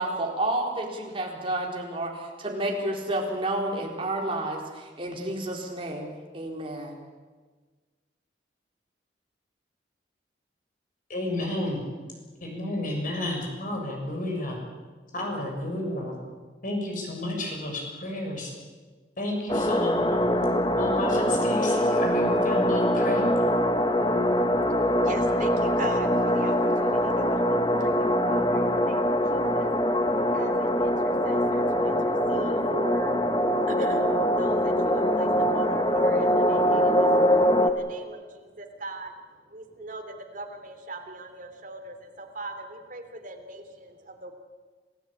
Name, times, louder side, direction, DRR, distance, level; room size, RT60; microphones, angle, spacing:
voice 1, 0.0-7.0, right 1 dB, 30° right, 0 dB, 4.3 m, -30 dB
voice 2, 11.1-11.8 12.4-14.6 15.1-16.1 16.6-18.5 19.2-20.2 20.8-23.3, left 1 dB, 50° left, 1 dB, 7.0 m, -31 dB
sound 1, 19.5-37.7, equal, 25° left, 1.4 m, -23 dB
voice 3, 24.3-29.7 30.3-33.1 33.7-39.1 39.5-44.3, right 2 dB, 50° right, 4 dB, 3.2 m, -40 dB
27.5 x 15.5 x 8.8 m, 1.4 s
head